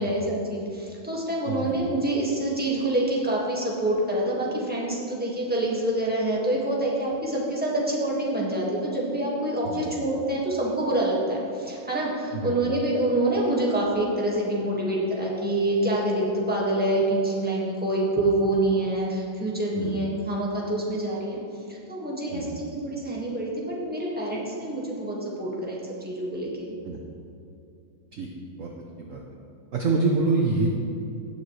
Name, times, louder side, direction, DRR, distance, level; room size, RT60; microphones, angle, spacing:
voice 1, 0.0-21.4 21.7-26.8, right 1 dB, 5° right, -5 dB, 1.5 m, -26 dB
voice 2, 22.3-22.6 26.8-27.0 28.1-28.3 28.6-28.7 29.0-29.2 29.7-30.7, right 3 dB, 60° right, 0 dB, 0.8 m, -26 dB
17.0 x 7.0 x 3.3 m, 2.7 s
omnidirectional pair, 2.4 m